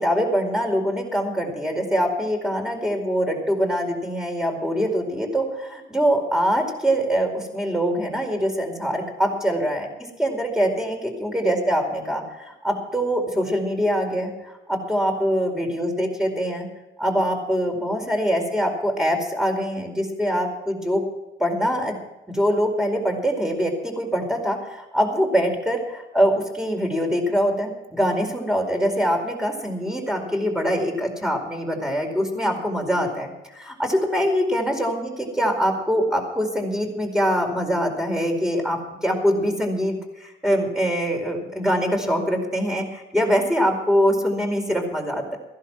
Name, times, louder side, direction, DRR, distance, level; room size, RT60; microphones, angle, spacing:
voice 1, 0.0-9.9 10.2-14.3 14.7-16.7 17.0-21.1 21.4-22.0 22.3-45.4, equal, 5° right, 2 dB, 4.6 m, -23 dB
16.0 x 11.0 x 6.2 m, 1.0 s
cardioid pair, 90°, 20 cm